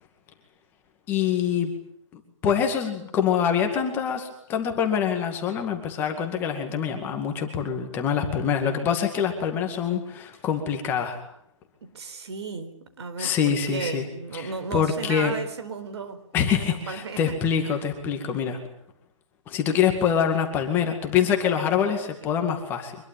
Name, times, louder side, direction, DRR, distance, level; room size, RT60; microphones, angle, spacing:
voice 1, 1.1-1.7 2.1-11.2 13.2-14.1 14.3-15.3 16.3-18.6 19.5-23.0, left 8 dB, 10° left, 4 dB, 2.1 m, -25 dB
voice 2, 11.8-16.2 16.6-17.4, right 5 dB, 55° right, 10 dB, 4.4 m, -35 dB
25.0 x 22.0 x 9.2 m, 0.72 s
hypercardioid pair, 170°, 17 cm